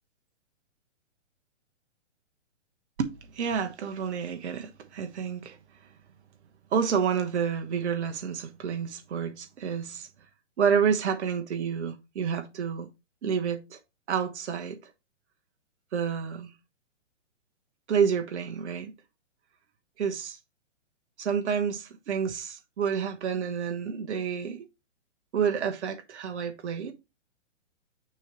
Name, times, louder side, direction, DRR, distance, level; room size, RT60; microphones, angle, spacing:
voice 1, 3.0-5.6 6.7-10.1 10.6-12.9 13.2-13.8 14.1-14.9 15.9-16.5 17.9-18.9 20.0-20.4 21.2-24.7 25.3-26.9, right 7 dB, 65° right, 1.2 m, -29 dB
6.3 x 3.0 x 5.1 m
hypercardioid pair, 145°, 37 cm